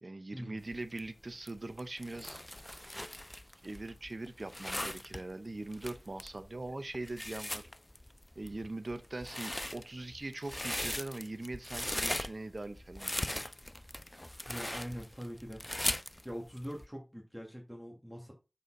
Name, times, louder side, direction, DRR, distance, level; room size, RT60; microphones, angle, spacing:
voice 1, 0.0-2.4 3.6-7.7 8.4-13.5, right 2 dB, 55° right, 0.7 m, -42 dB
sound 1, 0.6-16.9, left 1 dB, 15° left, 0.3 m, -39 dB
voice 2, 14.5-15.6 16.2-18.3, equal, 5° right, 1.6 m, -43 dB
6.7 x 4.2 x 3.7 m
wide cardioid pair, 55°, 0 cm